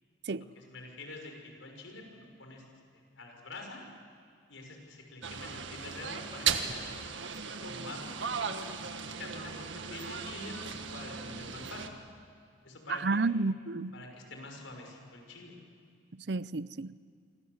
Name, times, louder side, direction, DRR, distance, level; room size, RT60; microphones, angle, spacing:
voice 1, 0.5-3.8 4.5-8.1 9.1-12.0 12.6-13.2 13.9-15.6, left 2 dB, 90° left, 3 dB, 5.9 m, -47 dB
sound 1, 5.2-11.9, right 6 dB, 80° right, 1.8 m, -37 dB
voice 2, 12.9-13.9 16.1-16.9, right 3 dB, 60° right, 17 dB, 0.6 m, -31 dB
28.0 x 25.0 x 8.1 m, 2.2 s
head